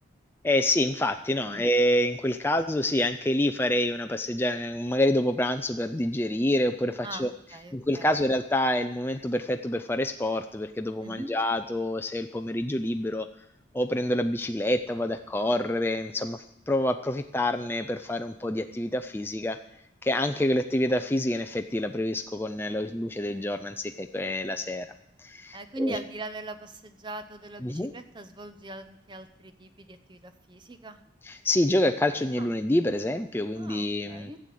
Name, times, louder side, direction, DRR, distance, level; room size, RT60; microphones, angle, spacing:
voice 1, 0.4-7.3 7.7-13.3 13.7-19.6 20.0-24.9 25.2-26.0 27.6-27.9 31.3-34.3, left 1 dB, 10° left, 6 dB, 0.4 m, -27 dB
voice 2, 7.0-8.1 11.0-11.3 25.5-31.0 32.4-32.5 33.5-34.4, right 1 dB, 25° right, 10 dB, 0.8 m, -40 dB
13.5 x 7.8 x 8.3 m, 0.80 s
head